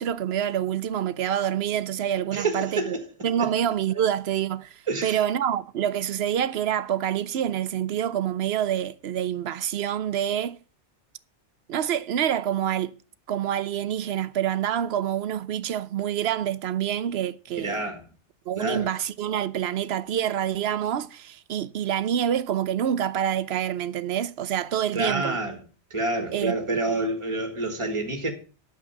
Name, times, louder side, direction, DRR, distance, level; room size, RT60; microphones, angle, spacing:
voice 1, 0.0-3.0 3.2-10.6 11.7-13.0 13.3-17.8 18.5-25.4 26.3-26.9, right 10 dB, 65° right, 0.9 m, -27 dB
voice 2, 2.3-3.0 3.4-3.5 4.9-5.2 17.6-18.0 18.6-18.9 24.9-25.6 25.9-28.3, right 2 dB, 25° right, 1.8 m, -28 dB
9.2 x 7.2 x 7.0 m
omnidirectional pair, 1.2 m